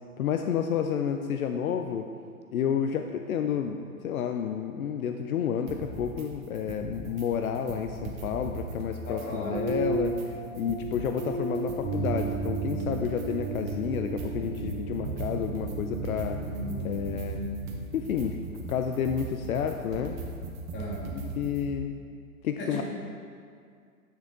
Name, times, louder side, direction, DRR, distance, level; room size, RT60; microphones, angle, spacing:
voice 1, 0.2-2.1 2.5-16.4 16.8-17.4 17.9-18.4 18.7-20.2 21.1-21.9 22.4-22.8, left 8 dB, 70° left, 6 dB, 0.6 m, -30 dB
sound 1, 5.7-6.3 6.6-7.3 7.6-10.3 10.6-21.7, right 3 dB, 30° right, 1.1 m, -39 dB
voice 2, 9.1-9.7 20.7-21.1 22.6-22.8, left 1 dB, 25° left, -3 dB, 1.9 m, -35 dB
sound 2, 9.5-17.4, right 3 dB, 10° right, 0.3 m, -33 dB
9.3 x 6.6 x 3.7 m, 2.2 s
hypercardioid pair, 115°, 44 cm